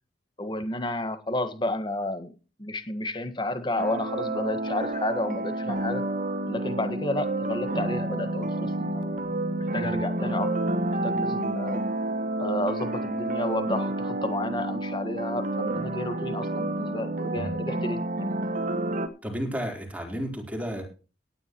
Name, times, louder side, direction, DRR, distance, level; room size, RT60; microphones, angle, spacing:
voice 1, 0.4-2.3 2.6-6.0 6.5-9.2 9.5-10.5 11.0-11.8 12.4-18.3, left 1 dB, 25° left, 9 dB, 1.6 m, -31 dB
sound 1, 3.8-19.1, right 2 dB, 50° right, 1.6 m, -29 dB
voice 2, 19.2-20.8, equal, 10° right, 2 dB, 4.0 m, -32 dB
18.0 x 10.5 x 3.1 m, 0.34 s
head